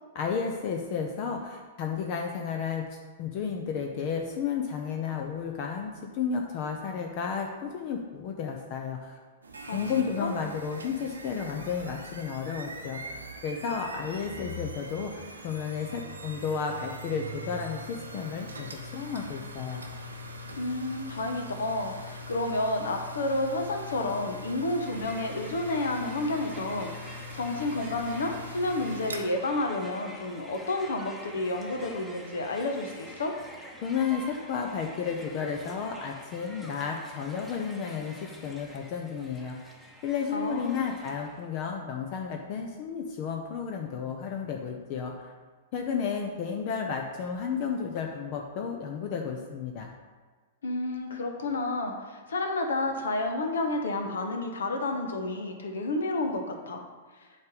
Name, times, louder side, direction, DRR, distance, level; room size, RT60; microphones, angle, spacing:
voice 1, 0.1-2.9 3.2-9.2 9.7-13.2 13.4-18.5 18.9-19.8 33.8-39.7 40.0-45.3 45.7-49.9, left 6 dB, 45° left, 2 dB, 0.7 m, -32 dB
sound 1, 9.4-29.2, equal, 80° right, 0.8 m, -42 dB
voice 2, 9.7-10.3 20.6-33.3 40.3-41.0 50.6-56.8, left 2 dB, 70° left, 4 dB, 1.0 m, -30 dB
Crowd, 24.8-41.5, equal, 5° left, 1.0 m, -47 dB
8.0 x 3.4 x 5.3 m, 1.4 s
figure-of-eight pair, 105°, 0 cm